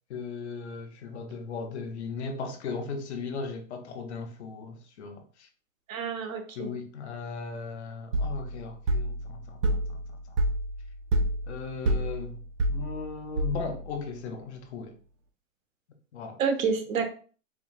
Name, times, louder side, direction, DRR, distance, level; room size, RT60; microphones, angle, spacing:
voice 1, 0.1-5.5 6.6-10.0 11.5-12.4 12.7-15.0 16.1-16.4, left 5 dB, 55° left, 0.8 m, -37 dB
voice 2, 5.9-6.7 16.4-17.1, right 5 dB, 85° right, 1.1 m, -28 dB
sound 1, 8.1-13.9, right 1 dB, 60° right, 0.7 m, -29 dB
4.3 x 3.0 x 2.4 m
supercardioid pair, 175°, 40 cm